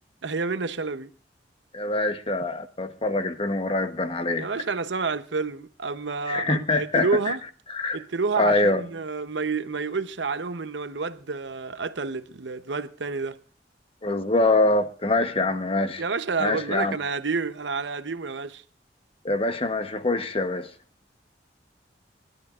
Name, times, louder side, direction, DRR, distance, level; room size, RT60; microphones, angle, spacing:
voice 1, 0.2-1.1 4.3-7.4 7.9-13.4 16.0-18.6, right 4 dB, 80° right, 0.8 m, -29 dB
voice 2, 1.7-4.5 6.3-7.3 7.7-8.0 8.4-8.8 14.0-16.0 16.4-17.0 19.2-20.7, left 2 dB, 30° left, 1.0 m, -24 dB
27.0 x 12.0 x 2.5 m
head